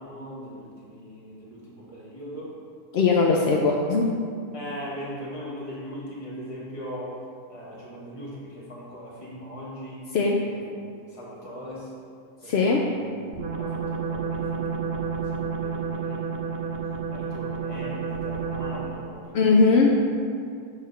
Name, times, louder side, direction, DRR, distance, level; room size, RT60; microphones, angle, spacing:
voice 1, 0.0-2.5 3.2-3.5 4.5-7.2 7.5-10.1 10.4-10.7 11.1-11.9 12.4-13.1 13.6-16.7 17.1-19.6, equal, 20° left, -7 dB, 1.4 m, -40 dB
voice 2, 2.9-4.2 10.1-10.4 12.4-12.8 19.3-19.9, left 4 dB, 70° left, -1 dB, 0.6 m, -20 dB
sound 1, 13.3-19.1, right 6 dB, 60° right, 0.6 m, -30 dB
6.5 x 3.5 x 5.5 m, 2.3 s
omnidirectional pair, 1.6 m